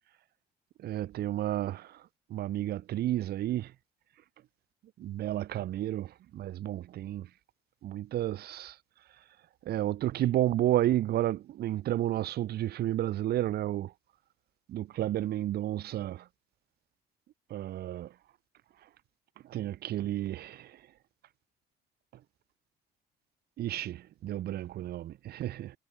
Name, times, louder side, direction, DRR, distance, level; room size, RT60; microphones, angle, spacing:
voice 1, 0.8-2.0 2.3-3.7 5.0-7.3 7.8-8.8 9.7-13.9 14.7-16.2 17.5-18.1 19.5-20.8 23.6-25.7, right 13 dB, 70° right, 7.9 m, -31 dB
cardioid pair, 110°, 17 cm